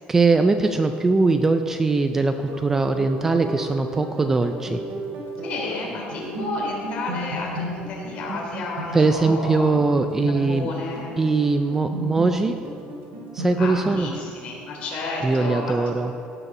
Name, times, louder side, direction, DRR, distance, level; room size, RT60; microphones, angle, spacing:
voice 1, 0.1-4.8 8.9-10.7 11.2-12.6 13.3-14.1 15.2-16.1, right 3 dB, 15° right, 7 dB, 0.3 m, -21 dB
sound 1, 2.5-13.9, right 1 dB, 60° right, 3.5 m, -34 dB
voice 2, 5.4-9.8 10.5-11.6 13.6-15.8, left 3 dB, 40° left, -2 dB, 3.5 m, -31 dB
17.0 x 6.9 x 6.0 m, 2.8 s
cardioid pair, 180°, 3 cm